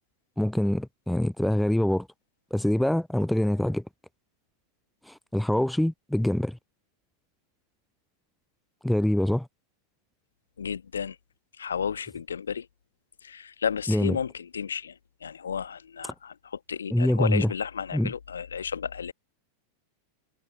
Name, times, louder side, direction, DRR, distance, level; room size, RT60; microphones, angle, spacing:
voice 1, 0.4-2.1 2.5-3.8 5.1-6.6 8.8-9.5 13.9-14.2 16.9-17.5 17.9-18.1, left 1 dB, ahead, 0.4 m, -24 dB
voice 2, 10.6-11.2 11.6-12.7 13.2-19.1, left 7 dB, 70° left, 1.2 m, -33 dB
figure-of-eight pair, 90°, 0 cm